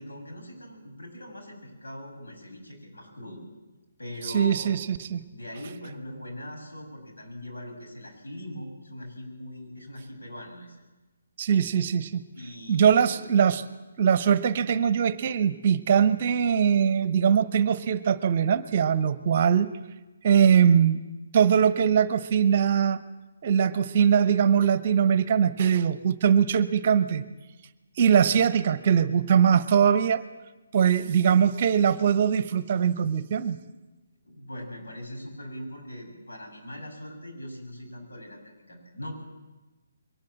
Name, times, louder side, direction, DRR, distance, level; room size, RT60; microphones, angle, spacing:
voice 1, 0.0-3.4 4.0-4.7 5.3-10.8 12.3-13.0 34.2-39.1, equal, 70° left, 1 dB, 7.8 m, -41 dB
voice 2, 4.3-5.2 11.4-12.2 12.7-13.6 14.0-19.7 20.2-21.0 21.3-23.0 23.4-27.2 28.0-30.2 30.7-33.6, right 7 dB, 40° right, 14 dB, 1.0 m, -21 dB
23.0 x 19.5 x 7.5 m, 1.1 s
figure-of-eight pair, 140°, 0 cm